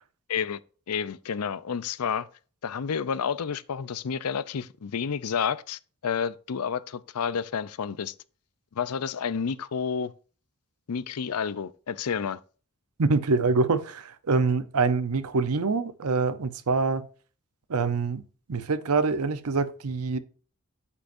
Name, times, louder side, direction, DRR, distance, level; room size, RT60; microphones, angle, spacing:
voice 1, 0.3-0.6 0.9-2.3 2.6-8.1 8.7-10.1 10.9-12.4, left 6 dB, 85° left, 0.5 m, -30 dB
voice 2, 13.0-17.0 17.7-18.2 18.5-20.2, right 4 dB, 80° right, 0.7 m, -25 dB
8.3 x 7.9 x 2.6 m
head